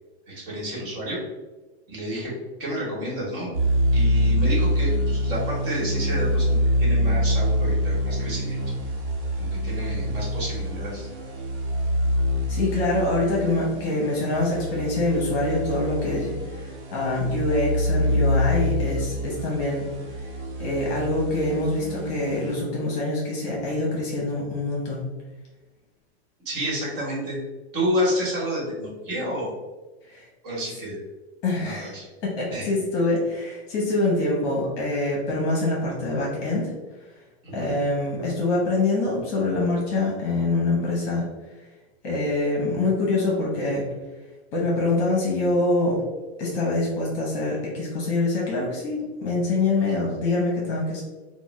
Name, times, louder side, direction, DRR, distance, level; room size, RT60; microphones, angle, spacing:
voice 1, 0.3-1.2 1.9-2.3 2.6-3.5 3.9-8.6 9.4-11.1 26.4-27.4 27.7-29.5 30.4-31.0 31.6-32.1 32.5-32.7 37.4-37.7, equal, 55° right, -4 dB, 1.3 m, -30 dB
sound 1, 3.5-22.6, equal, 80° right, 0.9 m, -25 dB
voice 2, 12.5-19.9 20.6-25.0 30.1-30.3 31.4-31.9 32.2-36.7 37.5-41.3 42.0-43.9 44.5-46.0 46.4-51.0, left 2 dB, 30° left, -3 dB, 0.7 m, -25 dB
3.2 x 2.1 x 3.1 m, 1.2 s
supercardioid pair, 170°, 33 cm